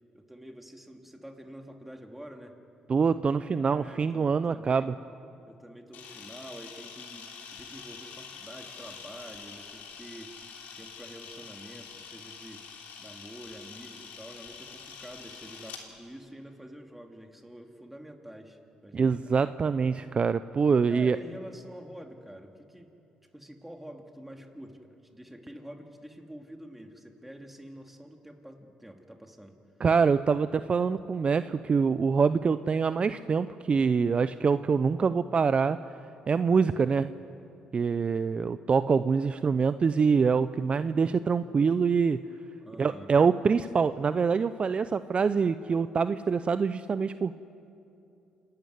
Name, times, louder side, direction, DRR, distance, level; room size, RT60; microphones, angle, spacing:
voice 1, 0.1-2.6 3.7-4.9 5.5-12.6 13.0-19.2 20.9-22.9 23.3-24.8 25.1-29.5 42.6-43.1, equal, 5° right, 3 dB, 2.8 m, -47 dB
voice 2, 2.9-4.9 18.9-21.2 29.8-35.8 36.3-37.1 37.7-42.2 42.8-47.3, right 5 dB, 40° right, 13 dB, 0.6 m, -25 dB
Camera, 5.9-15.8, left 6 dB, 75° left, 3.4 m, -46 dB
28.0 x 12.5 x 9.5 m, 2.8 s
supercardioid pair, 65°, 3 cm